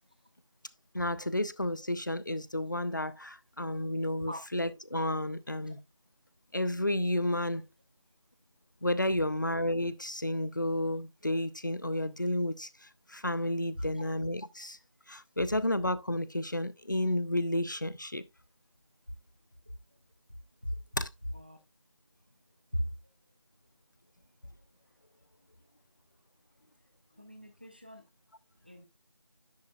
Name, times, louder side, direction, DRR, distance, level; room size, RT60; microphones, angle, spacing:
voice 1, 0.9-5.8 6.5-7.6 8.8-12.7 13.1-14.8 15.1-18.2 21.0-21.1, left 1 dB, 40° left, 0.6 m, -31 dB
voice 2, 27.2-28.0 28.7-28.8, equal, 20° right, 0.7 m, -37 dB
10.5 x 7.9 x 2.3 m
figure-of-eight pair, 175°, 16 cm